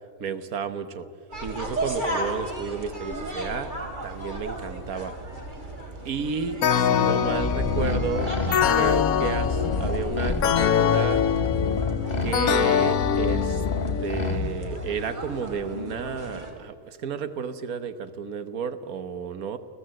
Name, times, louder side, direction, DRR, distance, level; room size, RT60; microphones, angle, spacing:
voice 1, 0.2-1.1 1.4-3.7 4.0-5.2 6.0-8.3 8.8-11.2 12.2-13.6 14.0-19.6, right 6 dB, 90° right, 10 dB, 1.6 m, -32 dB
sound 1, 1.3-16.5, right 1 dB, 35° right, 3.2 m, -35 dB
sound 2, 6.6-14.3, left 8 dB, 85° left, 1.2 m, -24 dB
sound 3, 7.3-15.0, left 3 dB, 30° left, 1.6 m, -29 dB
30.0 x 17.5 x 7.7 m, 2.2 s
omnidirectional pair, 1.5 m